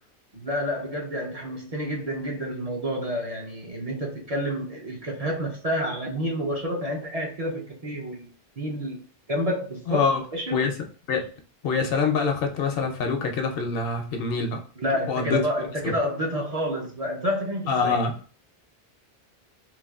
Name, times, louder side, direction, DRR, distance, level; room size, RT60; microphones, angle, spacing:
voice 1, 0.3-9.0 9.3-10.6 14.8-18.0, equal, 45° right, 0.6 m, -29 dB
voice 2, 9.9-10.2 10.5-10.8 11.1-11.3 11.6-14.6 15.1-15.4 15.8-15.9 17.7-18.1, left 4 dB, 70° left, 0.8 m, -25 dB
3.1 x 2.2 x 2.3 m
omnidirectional pair, 1.0 m